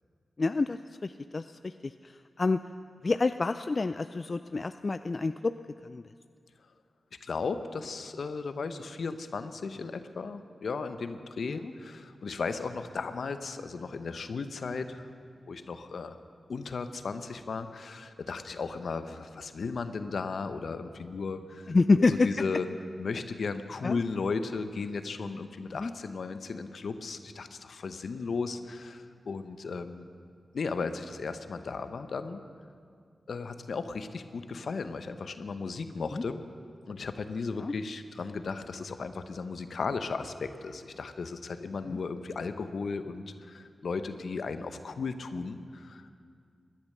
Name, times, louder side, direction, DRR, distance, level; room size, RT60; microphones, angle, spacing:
voice 1, 0.4-2.6 3.0-5.5 5.8-6.0 11.5-11.7 21.7-22.3 23.8-24.0 25.8-25.9 36.1-36.2 37.6-37.7 41.9-42.0, left 3 dB, 50° left, 11 dB, 0.4 m, -28 dB
voice 2, 7.2-15.1 15.5-16.2 16.5-22.7 23.0-30.1 30.5-32.4 33.3-36.4 36.9-46.1, left 4 dB, 75° left, 10 dB, 0.8 m, -35 dB
16.5 x 10.5 x 6.7 m, 2.2 s
cardioid pair, 40°, 0 cm